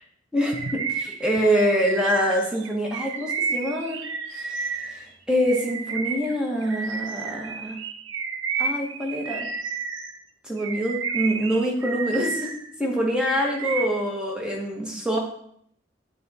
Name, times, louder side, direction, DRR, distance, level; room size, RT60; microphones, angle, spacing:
voice 1, 0.3-4.0 4.3-7.8 8.6-9.5 10.4-12.5 12.8-15.2, equal, 5° right, -2 dB, 1.2 m, -25 dB
Bird vocalization bird call bird song, 0.5-5.0 5.4-10.2 10.6-12.7 13.0-14.1, right 5 dB, 85° right, 0.6 m, -31 dB
8.4 x 4.0 x 4.1 m, 0.68 s
head